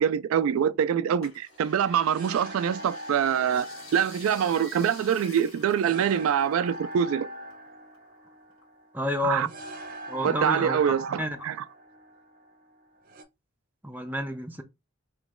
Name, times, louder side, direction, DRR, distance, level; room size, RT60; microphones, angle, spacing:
voice 1, 0.0-3.7 3.9-7.3 9.2-9.5 10.2-11.6, right 8 dB, 80° right, 0.3 m, -25 dB
sound 1, 1.2-7.1 7.3-8.6 9.1-9.9 10.4-10.5, left 2 dB, 75° left, 1.7 m, -49 dB
sound 2, 1.5-13.2, right 1 dB, 45° right, 0.7 m, -42 dB
voice 2, 8.9-9.5 10.1-11.4 13.8-14.6, equal, 10° right, 0.6 m, -30 dB
3.0 x 2.9 x 3.6 m
head